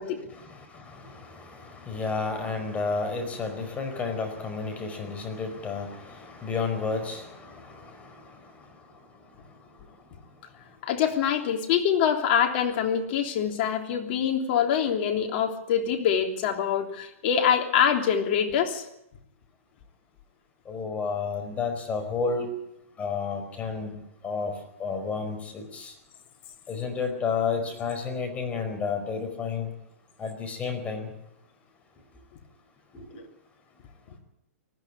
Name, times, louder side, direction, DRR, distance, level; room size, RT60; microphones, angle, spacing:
voice 1, 0.3-8.2 20.7-22.5 23.0-24.0 24.2-24.5 24.8-25.9 26.7-29.7 30.2-31.1 32.9-33.0, left 5 dB, 20° left, 6 dB, 4.9 m, -31 dB
voice 2, 10.8-18.8, left 8 dB, 50° left, 3 dB, 3.2 m, -25 dB
20.0 x 14.0 x 9.8 m, 0.81 s
hypercardioid pair, 135°, 8 cm